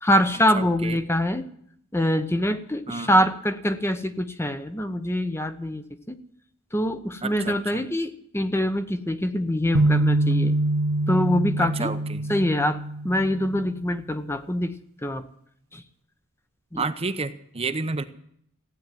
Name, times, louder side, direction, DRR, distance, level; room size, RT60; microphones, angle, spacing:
voice 1, 0.0-1.4 1.9-6.2 6.7-10.5 11.1-11.9 12.3-12.8 13.0-14.7 15.0-15.2 15.7-15.8 16.7-16.8, equal, 10° left, 9 dB, 0.9 m, -24 dB
voice 2, 0.5-1.0 2.9-3.1 7.2-7.8 11.6-12.2 16.8-18.0, right 4 dB, 30° right, 10 dB, 0.8 m, -30 dB
sound 1, 9.7-13.8, right 2 dB, 90° right, 1.0 m, -24 dB
16.0 x 9.3 x 9.2 m, 0.67 s
head